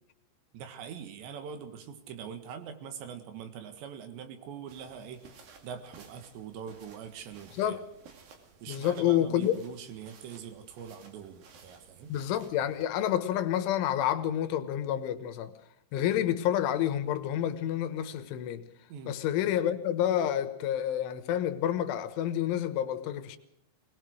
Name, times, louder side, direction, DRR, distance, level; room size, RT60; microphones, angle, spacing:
voice 1, 0.5-5.2 5.6-7.8 8.6-12.1 18.9-19.2, right 7 dB, 70° right, 3.8 m, -43 dB
sound 1, 4.7-12.8, right 5 dB, 55° right, 3.7 m, -56 dB
voice 2, 8.7-9.5 12.1-15.5 15.9-18.7 19.1-23.4, left 11 dB, 85° left, 3.7 m, -29 dB
22.0 x 19.5 x 6.4 m
omnidirectional pair, 5.4 m